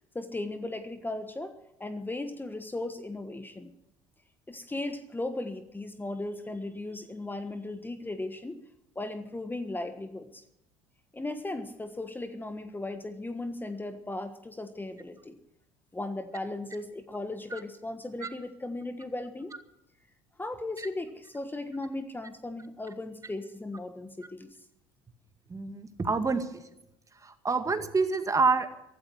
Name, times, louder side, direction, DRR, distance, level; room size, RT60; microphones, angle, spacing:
voice 1, 0.1-3.7 4.5-8.6 8.9-10.4 11.1-15.4 15.9-19.5 20.4-24.5, left 2 dB, 15° left, 9 dB, 1.4 m, -37 dB
voice 2, 25.5-26.6 27.2-28.7, right 4 dB, 25° right, 8 dB, 2.0 m, -27 dB
15.0 x 13.0 x 6.3 m, 0.84 s
hypercardioid pair, 70°, 14 cm